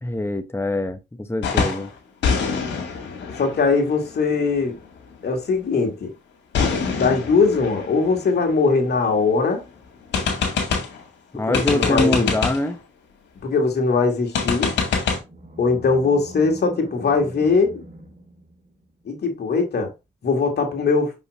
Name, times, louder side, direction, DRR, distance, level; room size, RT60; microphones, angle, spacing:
voice 1, 0.0-1.9 11.3-12.8, left 2 dB, 15° left, 0.9 m, -24 dB
sound 1, 1.4-1.9 2.2-4.8 6.5-9.3 9.6-9.7 10.1-11.0 11.5-12.7 14.3-15.2, left 5 dB, 90° left, 2.0 m, -25 dB
voice 2, 3.4-4.8 5.2-6.1 7.0-9.6 11.5-12.3 13.4-14.7 15.6-17.8 19.1-19.9 20.2-21.1, left 4 dB, 65° left, 2.3 m, -20 dB
Animal, 15.0-19.0, equal, 50° right, 3.1 m, -41 dB
6.2 x 5.5 x 3.1 m
cardioid pair, 55°, 18 cm